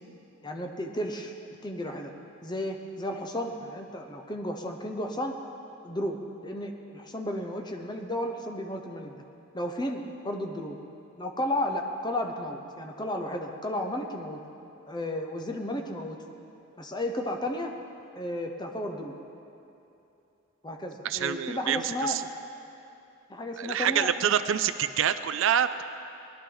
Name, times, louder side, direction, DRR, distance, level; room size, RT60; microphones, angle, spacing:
voice 1, 0.4-1.3 1.6-2.1 2.4-5.3 5.8-9.2 9.5-10.8 11.2-14.4 14.9-16.2 16.8-17.7 18.1-19.1 20.6-22.3 23.3-24.1, left 1 dB, 20° left, 3 dB, 0.8 m, -33 dB
voice 2, 21.0-22.2 23.6-25.8, right 9 dB, 65° right, 12 dB, 0.4 m, -26 dB
19.0 x 11.5 x 4.0 m, 2.8 s
head